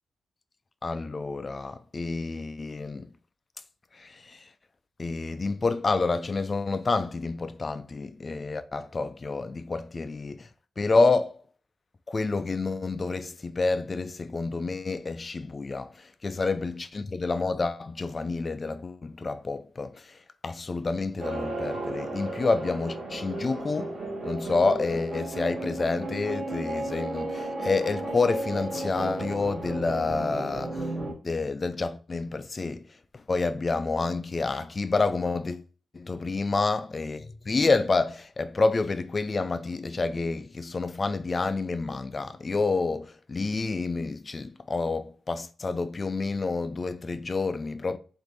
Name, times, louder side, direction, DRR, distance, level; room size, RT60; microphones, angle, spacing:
voice 1, 0.8-3.1 3.9-4.5 5.0-10.5 10.8-11.4 12.1-35.6 35.9-48.0, left 3 dB, 30° left, 0.4 m, -29 dB
sound 1, 21.2-31.1, right 2 dB, 45° right, 1.7 m, -34 dB
4.6 x 2.6 x 4.1 m
cardioid pair, 115°, 0 cm